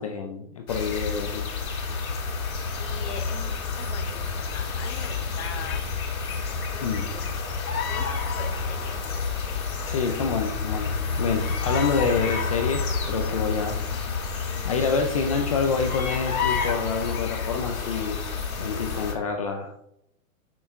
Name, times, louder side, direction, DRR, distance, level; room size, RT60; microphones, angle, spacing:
voice 1, 0.0-1.4 6.8-7.1 9.9-10.9 11.2-13.8 14.6-18.2 18.6-19.7, left 5 dB, 25° left, 4 dB, 0.4 m, -27 dB
sound 1, 0.7-19.1, left 5 dB, 80° left, 2.5 m, -29 dB
voice 2, 2.4-5.9 6.5-7.2 7.9-9.1, left 6 dB, 50° left, 4 dB, 1.5 m, -41 dB
6.8 x 5.7 x 3.5 m, 0.76 s
hypercardioid pair, 150°, 42 cm